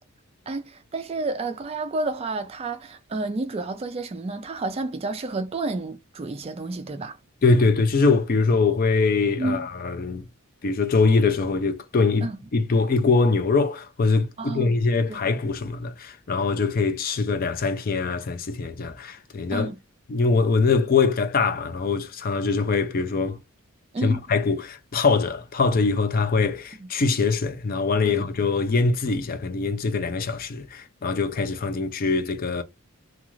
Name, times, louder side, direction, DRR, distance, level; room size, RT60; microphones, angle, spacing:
voice 1, 0.5-7.2 9.4-9.7 12.2-12.4 14.4-14.7 15.1-15.2 19.5-19.8 23.9-24.2 26.8-26.9 28.0-28.3, right 2 dB, 25° right, 0.3 m, -30 dB
voice 2, 7.4-10.3 10.6-19.7 20.1-23.4 24.0-32.6, left 4 dB, 40° left, 0.4 m, -23 dB
2.4 x 2.3 x 3.0 m
head